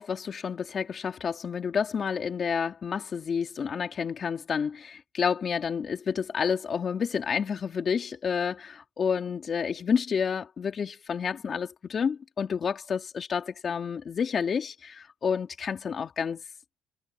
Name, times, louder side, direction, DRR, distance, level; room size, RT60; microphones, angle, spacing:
voice 1, 0.0-16.4, left 6 dB, 35° left, 3.2 m, -29 dB
cardioid pair, 135°, 0 cm